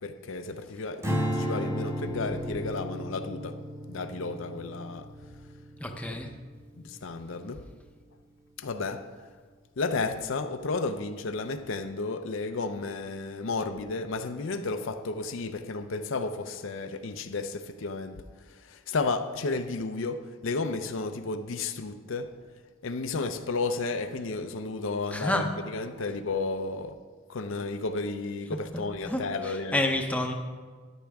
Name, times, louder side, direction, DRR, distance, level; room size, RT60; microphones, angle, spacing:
voice 1, 0.0-3.6 3.9-5.1 6.1-6.2 6.8-7.6 8.6-9.1 9.8-18.2 18.7-22.3 22.8-27.0 27.3-29.8, left 3 dB, 65° left, 0.6 m, -32 dB
Strum, 1.0-7.4, equal, 15° right, 1.0 m, -34 dB
voice 2, 5.8-6.3 25.1-25.6 28.5-30.3, left 1 dB, 5° left, 0.7 m, -30 dB
13.5 x 10.0 x 3.5 m
head